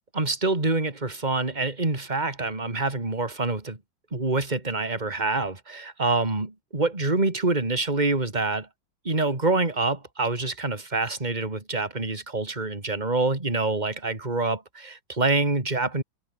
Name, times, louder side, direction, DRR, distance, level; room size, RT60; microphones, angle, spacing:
voice 1, 0.1-3.8 4.1-8.7 9.1-16.0, right 3 dB, 20° right, 3.5 m, -26 dB
omnidirectional pair, 2.2 m